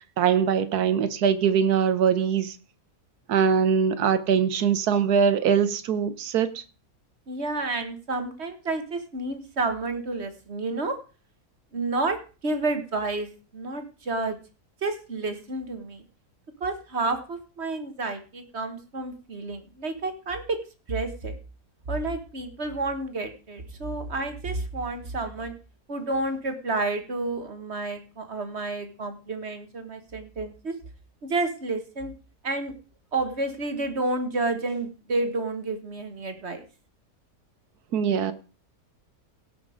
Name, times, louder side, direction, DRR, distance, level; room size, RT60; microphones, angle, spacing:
voice 1, 0.2-2.5 3.3-6.6 37.9-38.3, right 7 dB, 85° right, 1.5 m, -22 dB
voice 2, 7.3-11.0 11.7-14.4 14.8-16.0 16.6-20.6 20.9-21.4 21.9-25.5 25.9-30.7 31.2-32.1 32.4-32.7 33.1-36.7, right 3 dB, 45° right, 1.6 m, -30 dB
17.0 x 5.9 x 5.0 m
omnidirectional pair, 1.6 m